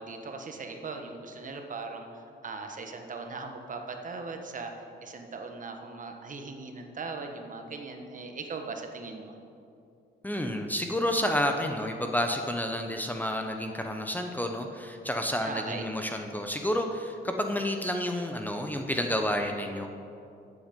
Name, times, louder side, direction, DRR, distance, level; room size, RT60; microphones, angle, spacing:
voice 1, 0.0-4.7 5.0-9.3 15.4-15.8, right 4 dB, 40° right, 4 dB, 1.3 m, -39 dB
voice 2, 10.2-19.9, left 1 dB, 10° left, 4 dB, 0.8 m, -30 dB
13.0 x 8.1 x 5.3 m, 2.6 s
cardioid pair, 90°, 20 cm